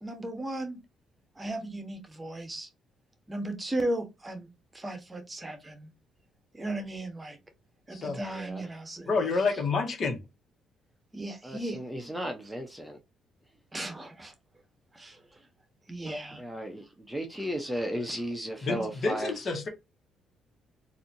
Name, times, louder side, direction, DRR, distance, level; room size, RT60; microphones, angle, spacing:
voice 1, 0.0-0.8 1.4-2.7 3.3-4.5 4.7-5.9 6.5-7.4 7.9-9.5 11.1-11.8 13.7-14.3 14.9-15.4 15.9-16.4, right 1 dB, 20° right, 1.3 m, -36 dB
voice 2, 8.3-8.7 11.4-13.0 16.4-19.3, equal, 5° right, 0.9 m, -35 dB
voice 3, 9.0-10.2 18.6-19.7, left 4 dB, 50° left, 1.5 m, -28 dB
4.0 x 2.8 x 2.8 m
supercardioid pair, 75°, 0 cm